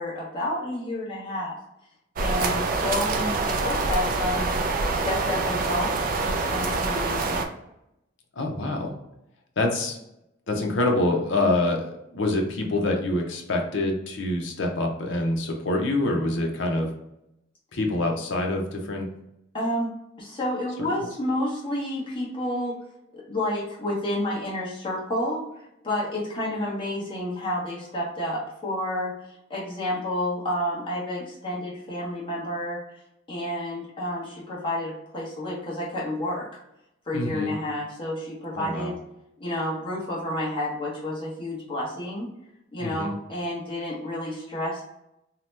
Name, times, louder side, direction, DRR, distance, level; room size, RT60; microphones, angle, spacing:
voice 1, 0.0-1.5 2.2-4.5 4.9-7.4 19.5-19.9 20.2-22.8 23.1-25.4 25.8-29.1 29.5-32.8 33.3-36.5 37.1-38.9 39.4-42.3 42.7-44.8, left 1 dB, 25° left, -6 dB, 1.0 m, -30 dB
sound 1, 2.2-7.5, right 3 dB, 45° right, 0.3 m, -26 dB
voice 2, 8.4-8.9 9.6-10.0 10.5-16.9 17.7-19.1 37.1-37.5 38.5-38.9 42.8-43.1, left 2 dB, 70° left, 2 dB, 0.6 m, -26 dB
2.8 x 2.1 x 3.2 m, 0.83 s
head